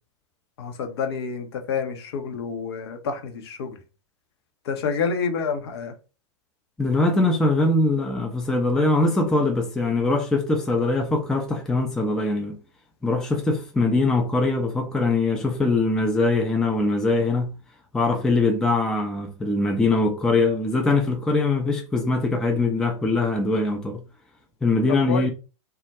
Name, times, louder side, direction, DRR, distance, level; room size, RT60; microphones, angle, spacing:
voice 1, 0.6-3.8 4.6-5.9 24.9-25.3, left 5 dB, 55° left, 0.6 m, -28 dB
voice 2, 6.8-12.6 13.0-17.5 17.9-24.0 24.6-25.3, left 2 dB, 5° left, 0.4 m, -22 dB
2.3 x 2.1 x 2.8 m
figure-of-eight pair, 100°, 16 cm